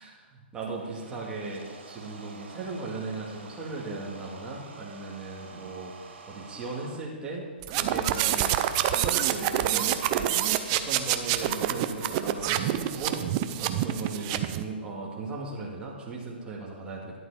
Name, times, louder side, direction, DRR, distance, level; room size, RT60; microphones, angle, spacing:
voice 1, 0.0-5.9 6.3-13.2 13.6-17.2, right 3 dB, 15° right, -4 dB, 2.3 m, -37 dB
sound 1, 0.6-7.0, right 4 dB, 85° right, 2.2 m, -47 dB
sound 2, 7.6-14.6, right 12 dB, 30° right, 0.6 m, -27 dB
11.0 x 7.9 x 5.0 m, 1.5 s
hypercardioid pair, 140°, 6 cm